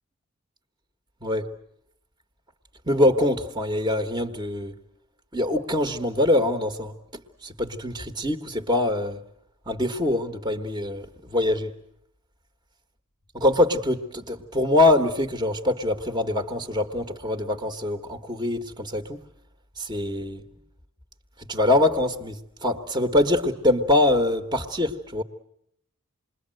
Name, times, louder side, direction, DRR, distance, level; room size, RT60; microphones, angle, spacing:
voice 1, 2.9-4.7 5.3-6.9 7.4-9.2 9.7-11.7 13.3-19.2 19.8-20.4 21.5-25.2, left 1 dB, 20° right, 1.6 m, -24 dB
28.0 x 22.0 x 7.8 m
head